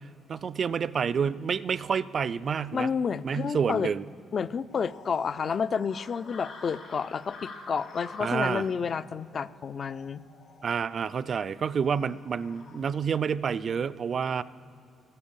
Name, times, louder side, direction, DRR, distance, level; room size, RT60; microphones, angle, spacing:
voice 1, 0.3-2.9 3.2-4.0 8.2-8.7 10.6-14.4, right 6 dB, 50° right, 18 dB, 0.3 m, -28 dB
voice 2, 2.7-3.9 4.3-10.2, left 6 dB, 45° left, 16 dB, 0.4 m, -30 dB
sound 1, 4.7-12.8, left 3 dB, 65° left, 2.7 m, -48 dB
12.0 x 9.7 x 7.3 m, 2.8 s
cardioid pair, 90°, 0 cm